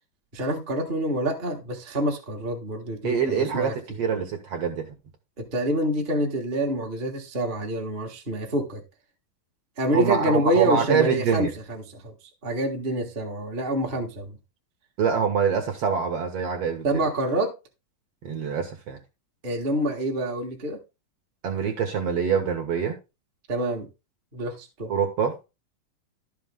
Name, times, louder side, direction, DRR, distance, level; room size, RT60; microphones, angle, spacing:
voice 1, 0.3-4.0 5.4-8.8 9.8-12.1 12.4-14.4 16.8-17.5 19.4-20.8 23.5-23.9 24.3-24.9, right 1 dB, 25° right, 1.1 m, -27 dB
voice 2, 3.0-4.9 9.9-11.5 15.0-17.0 18.2-19.0 21.4-23.0 24.9-25.4, right 6 dB, 55° right, 2.0 m, -25 dB
12.0 x 5.7 x 3.6 m
omnidirectional pair, 3.9 m